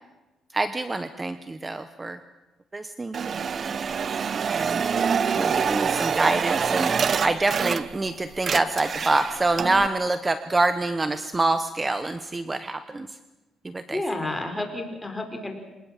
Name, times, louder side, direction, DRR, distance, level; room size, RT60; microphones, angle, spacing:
voice 1, 0.5-2.2 2.7-3.3 3.6-3.9 4.5-4.8 5.3-6.9 7.2-13.1 13.6-14.0, right 2 dB, 20° right, 11 dB, 1.0 m, -26 dB
sound 1, 3.1-8.1 8.3-9.9, right 6 dB, 45° right, 0.8 m, -26 dB
voice 2, 13.9-15.6, left 2 dB, 15° left, 5 dB, 4.7 m, -30 dB
26.0 x 19.0 x 7.5 m, 1.1 s
cardioid pair, 90°, 0 cm